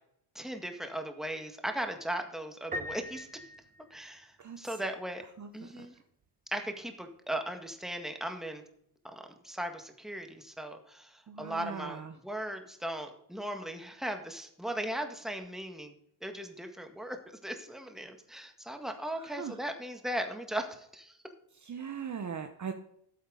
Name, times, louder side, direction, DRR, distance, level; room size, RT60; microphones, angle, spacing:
voice 1, 0.4-3.3 3.9-5.2 5.5-6.0 6.5-8.6 9.1-15.9 16.2-17.2 17.4-21.2, right 1 dB, ahead, 5 dB, 1.7 m, -38 dB
Piano, 2.7-4.5, left 1 dB, 15° right, 1.3 m, -41 dB
voice 2, 5.4-5.9 11.3-12.2 19.2-19.6 21.6-22.7, right 6 dB, 35° right, 7 dB, 1.0 m, -40 dB
13.5 x 8.1 x 3.9 m, 0.71 s
supercardioid pair, 85°, 50 cm